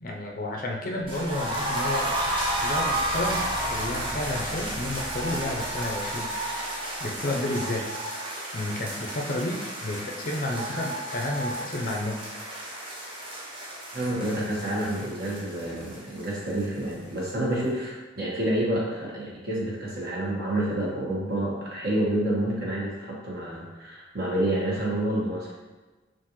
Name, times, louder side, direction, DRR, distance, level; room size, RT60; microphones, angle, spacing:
voice 1, 0.0-2.3 2.6-6.3 7.0-7.9 8.5-12.2, left 1 dB, 45° left, 0 dB, 0.6 m, -31 dB
sound 1, 1.0-7.2, equal, 10° right, 1.1 m, -42 dB
sound 2, 1.1-16.9 17.2-17.3 17.6-17.7, right 1 dB, 30° right, 0.8 m, -32 dB
voice 2, 13.9-25.5, right 1 dB, 55° right, -5 dB, 1.3 m, -28 dB
5.8 x 2.5 x 3.0 m, 1.2 s
head